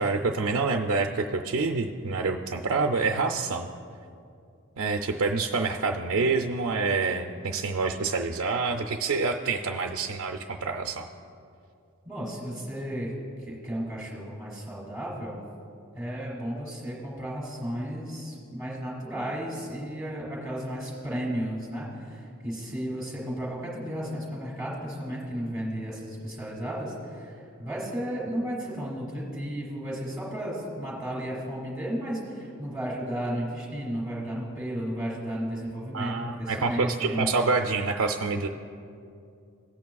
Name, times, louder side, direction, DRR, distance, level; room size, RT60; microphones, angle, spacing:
voice 1, 0.0-3.7 4.8-11.1 35.9-38.5, right 4 dB, 70° right, 3 dB, 0.5 m, -27 dB
voice 2, 12.0-13.1 13.4-15.4 15.9-37.3, equal, 5° right, -8 dB, 2.2 m, -33 dB
18.0 x 8.4 x 2.3 m, 2.5 s
head